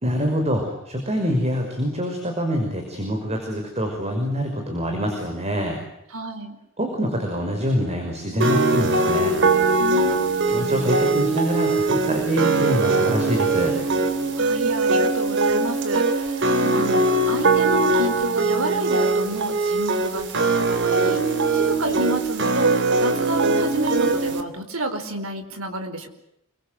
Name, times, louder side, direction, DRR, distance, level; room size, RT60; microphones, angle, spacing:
voice 1, 0.0-5.8 6.8-9.4 10.5-13.7, equal, 30° right, 3 dB, 5.7 m, -25 dB
voice 2, 6.1-6.6 9.8-10.6 14.4-26.1, right 1 dB, 75° right, 7 dB, 4.8 m, -30 dB
sound 1, 8.4-24.4, right 3 dB, 60° right, 3.2 m, -21 dB
28.5 x 24.5 x 7.8 m, 0.81 s
head